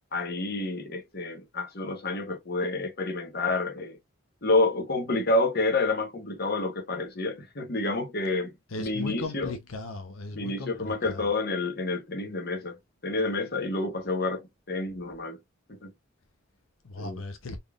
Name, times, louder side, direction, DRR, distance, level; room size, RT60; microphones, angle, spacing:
voice 1, 0.1-4.0 4.4-8.5 8.8-9.5 10.3-12.8 13.0-15.4 15.8-15.9 17.0-17.2, left 2 dB, 50° left, 1.2 m, -29 dB
voice 2, 8.7-11.3 16.8-17.6, left 2 dB, 85° left, 0.8 m, -37 dB
4.2 x 3.5 x 2.4 m
head